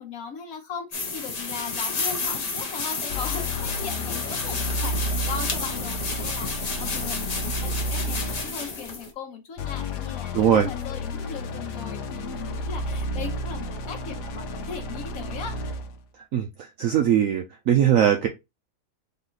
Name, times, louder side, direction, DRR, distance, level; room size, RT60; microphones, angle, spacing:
voice 1, 0.0-15.5, left 6 dB, 60° left, 1.5 m, -38 dB
sound 1, 0.9-9.1, left 4 dB, 40° left, 0.5 m, -31 dB
sound 2, 3.1-8.7 9.6-16.0, left 1 dB, 75° left, 1.3 m, -32 dB
voice 2, 10.3-10.7 16.3-18.3, right 9 dB, 65° right, 0.9 m, -20 dB
4.0 x 3.0 x 3.9 m
omnidirectional pair, 1.8 m